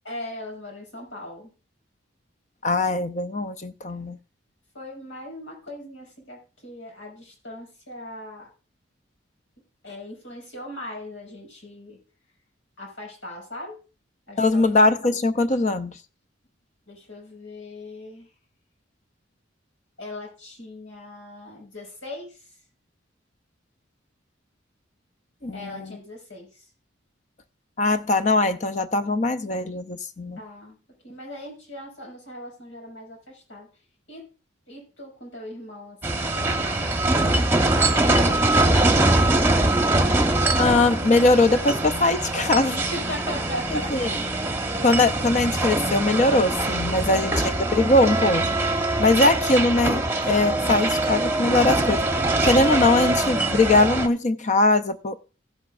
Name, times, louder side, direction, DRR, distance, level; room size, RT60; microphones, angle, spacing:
voice 1, 0.0-1.5 3.9-4.2 4.7-8.5 9.8-12.0 12.8-13.8 14.3-14.7 16.9-18.3 20.0-22.5 25.5-26.7 30.4-30.8 31.0-33.7 34.1-34.3 34.7-39.4 42.9-44.2 46.0-46.2, left 1 dB, 90° left, 5.4 m, -39 dB
voice 2, 2.6-4.2 14.4-16.0 25.4-26.0 27.8-30.4 40.6-42.8 43.7-44.1 44.8-48.5 49.0-52.0 52.4-55.2, left 2 dB, 40° left, 0.6 m, -21 dB
sound 1, 36.0-54.1, right 2 dB, 10° right, 1.0 m, -23 dB
16.0 x 8.0 x 2.5 m
head